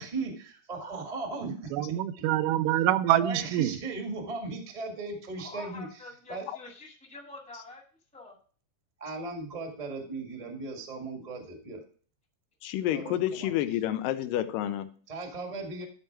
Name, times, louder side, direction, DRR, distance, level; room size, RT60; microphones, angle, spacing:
voice 1, 0.0-1.8 2.2-2.3 3.1-5.9 6.3-6.4 9.0-11.8 12.9-13.5 15.1-15.8, right 3 dB, 25° right, 2 dB, 0.8 m, -37 dB
voice 2, 1.7-3.8, right 13 dB, 80° right, 13 dB, 2.0 m, -25 dB
voice 3, 5.4-7.8 8.1-8.4, left 2 dB, 5° left, -1 dB, 0.8 m, -46 dB
voice 4, 12.6-14.9, left 12 dB, 85° left, 11 dB, 2.3 m, -29 dB
12.0 x 4.4 x 4.6 m, 0.43 s
omnidirectional pair, 3.9 m